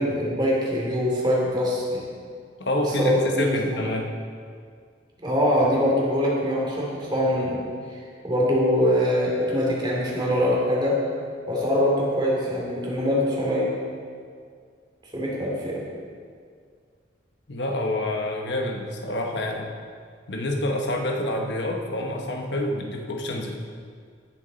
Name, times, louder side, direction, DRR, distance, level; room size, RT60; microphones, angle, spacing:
voice 1, 0.0-2.1 3.0-3.8 5.2-7.6 8.2-11.0 11.5-13.8 15.1-15.8, equal, 25° right, -4 dB, 2.6 m, -23 dB
voice 2, 2.6-4.1 17.5-19.7 20.3-23.6, left 1 dB, 70° left, 1 dB, 1.2 m, -27 dB
17.0 x 7.3 x 4.0 m, 2.1 s
head